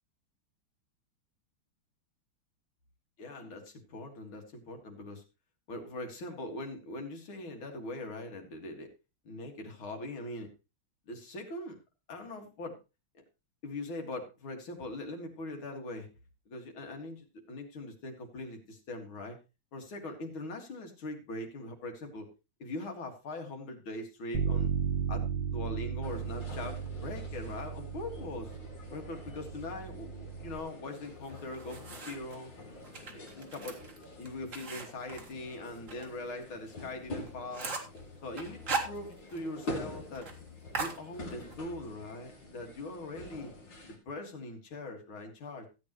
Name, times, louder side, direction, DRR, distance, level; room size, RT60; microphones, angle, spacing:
voice 1, 3.2-5.2 5.7-8.9 9.2-10.5 11.1-11.7 12.1-12.8 13.6-16.1 16.5-19.4 19.7-22.3 22.6-24.7 25.1-28.5 28.9-32.5 33.1-33.8 34.2-37.8 38.2-40.3 40.8-43.5 43.9-45.7, left 2 dB, 85° left, 3 dB, 2.9 m, -41 dB
Bass guitar, 24.3-30.6, right 7 dB, 70° right, 1.8 m, -35 dB
sound 1, 26.0-44.0, left 1 dB, 65° left, 3.7 m, -46 dB
sound 2, 31.2-32.4 32.8-36.1 36.4-36.5 36.9-37.0 37.3-38.0 38.4-39.5 39.7-39.8 40.1-40.3 40.7-41.6, right 4 dB, 40° right, 2.1 m, -38 dB
15.0 x 8.6 x 3.1 m, 0.28 s
omnidirectional pair, 2.2 m